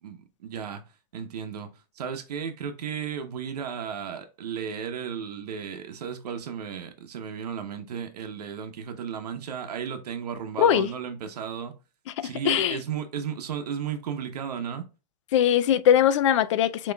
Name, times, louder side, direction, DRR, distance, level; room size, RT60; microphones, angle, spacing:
voice 1, 0.0-0.8 1.1-11.7 12.2-14.8, right 7 dB, 75° right, 0.8 m, -34 dB
voice 2, 10.6-10.9 12.4-12.8 15.3-16.9, left 10 dB, 50° left, 0.4 m, -21 dB
6.9 x 3.0 x 2.2 m
hypercardioid pair, 155°, 21 cm